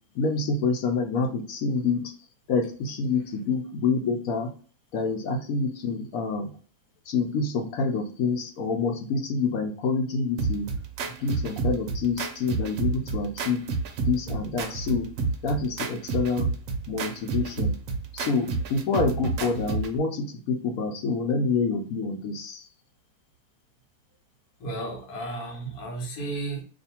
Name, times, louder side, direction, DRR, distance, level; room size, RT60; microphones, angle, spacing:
voice 1, 0.1-2.1 2.5-4.5 4.9-6.5 7.1-10.7 11.2-13.6 14.1-15.1 15.4-16.5 16.9-17.8 18.1-22.7, left 4 dB, 70° left, 1.1 m, -27 dB
sound 1, 10.4-20.0, right 4 dB, 65° right, 0.8 m, -30 dB
voice 2, 24.6-26.6, right 2 dB, 85° left, 1.3 m, -33 dB
2.6 x 2.5 x 4.1 m
omnidirectional pair, 1.6 m